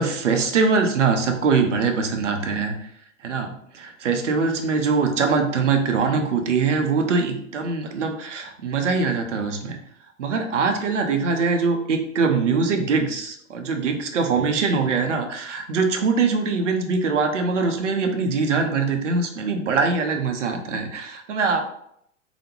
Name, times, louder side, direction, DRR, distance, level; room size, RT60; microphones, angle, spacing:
voice 1, 0.0-2.7 3.2-9.8 10.2-21.6, right 4 dB, 65° right, 5 dB, 0.6 m, -22 dB
3.2 x 2.1 x 3.0 m, 0.70 s
figure-of-eight pair, 105°, 40 cm